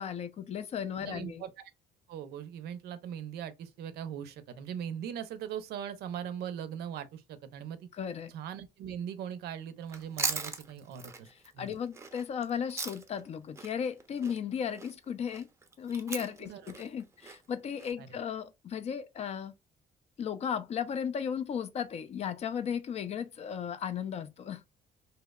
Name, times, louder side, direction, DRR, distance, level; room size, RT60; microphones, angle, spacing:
voice 1, 0.0-1.4 8.0-8.3 11.6-15.5 15.8-19.5 20.2-24.6, left 7 dB, 40° left, 0.4 m, -35 dB
voice 2, 1.0-1.5 2.1-7.9 8.3-11.3 11.5-11.8 16.4-16.8 18.0-18.2, right 9 dB, 75° right, 0.5 m, -40 dB
Chewing mastication, 9.8-13.3 13.6-17.9, right 4 dB, 15° right, 0.5 m, -39 dB
2.8 x 2.0 x 2.2 m
cardioid pair, 110°, 17 cm